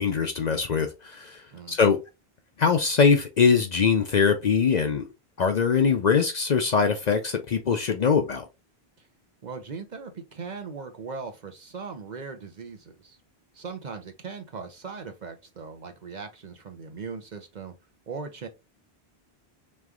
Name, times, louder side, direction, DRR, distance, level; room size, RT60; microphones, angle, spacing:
voice 1, 0.0-2.0 2.6-5.0 5.4-8.5, left 6 dB, 50° left, 0.6 m, -22 dB
voice 2, 1.5-2.0 9.0-9.1 9.4-13.2 13.5-17.7 18.1-18.5, right 5 dB, 50° right, 0.8 m, -39 dB
3.4 x 3.2 x 3.6 m
omnidirectional pair, 1.0 m